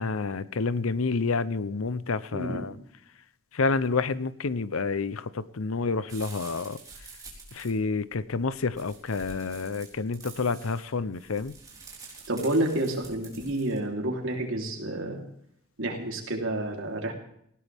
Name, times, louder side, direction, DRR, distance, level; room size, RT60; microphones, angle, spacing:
voice 1, 0.0-2.8 3.5-6.8 7.5-11.5, left 4 dB, 90° left, 17 dB, 0.8 m, -29 dB
voice 2, 2.3-2.6 12.3-15.2 15.8-17.1, right 1 dB, 70° right, 0 dB, 3.6 m, -29 dB
sound 1, 6.1-13.8, right 4 dB, 20° right, 4.3 m, -48 dB
19.5 x 17.0 x 3.6 m, 0.67 s
head